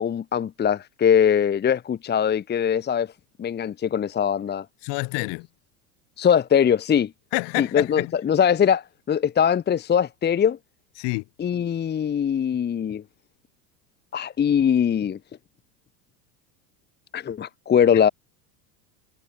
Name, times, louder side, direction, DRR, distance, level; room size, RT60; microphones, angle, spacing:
voice 1, 0.0-3.1 3.4-4.6 6.2-7.1 7.6-10.6 11.4-13.0 14.1-15.2 17.1-18.1, left 8 dB, 20° left, 1.2 m, -21 dB
voice 2, 4.8-5.5 7.3-8.1 11.0-11.2, left 28 dB, 55° left, 4.4 m, -27 dB
supercardioid pair, 120°, 49 cm